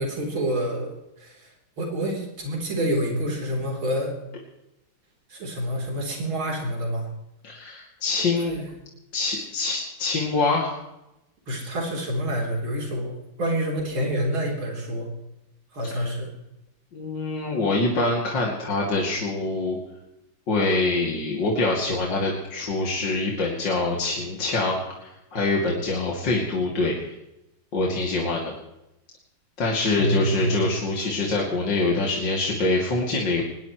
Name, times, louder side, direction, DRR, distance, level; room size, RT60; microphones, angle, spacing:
voice 1, 0.0-1.5 1.8-4.1 5.3-7.1 8.3-8.7 11.5-15.1 15.7-16.3 30.0-30.6, equal, 80° right, 0 dB, 4.5 m, -27 dB
voice 2, 7.4-8.6 9.1-10.7 15.9-16.1 16.9-19.8 20.5-27.1 27.7-28.5 29.6-33.4, left 2 dB, 60° left, -3 dB, 3.2 m, -25 dB
20.5 x 20.0 x 3.1 m, 0.90 s
omnidirectional pair, 2.2 m